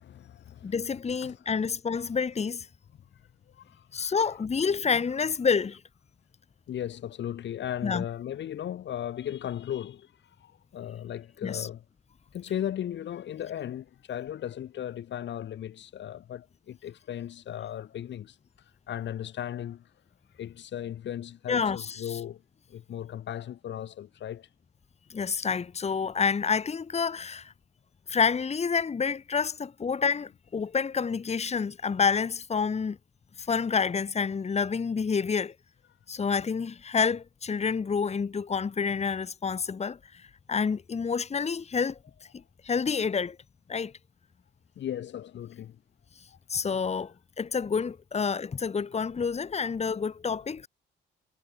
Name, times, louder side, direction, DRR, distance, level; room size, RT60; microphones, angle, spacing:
voice 1, 0.0-0.7 1.2-1.4 3.5-4.1 6.7-10.1 10.4-11.8 12.3-18.4 18.9-19.9 20.3-22.4 22.7-24.5 44.8-45.8 46.3-46.6, left 10 dB, 65° left, 2.1 m, -36 dB
voice 2, 0.6-2.7 3.9-5.8 7.8-8.0 11.4-11.7 21.5-22.0 25.1-27.5 28.1-33.0 33.4-35.5 36.1-40.2 40.5-42.0 42.6-43.4 43.7-43.9 46.5-50.7, left 5 dB, 35° left, 1.7 m, -28 dB
cardioid pair, 90°, 20 cm